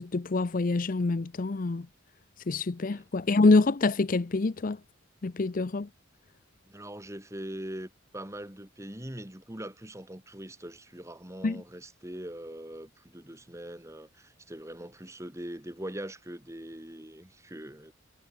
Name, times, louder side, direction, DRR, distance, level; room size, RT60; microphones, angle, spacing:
voice 1, 0.0-1.9 2.5-4.8 5.2-5.9 11.4-11.6, left 3 dB, 40° left, 0.6 m, -26 dB
voice 2, 6.6-17.9, right 1 dB, 15° right, 2.3 m, -42 dB
head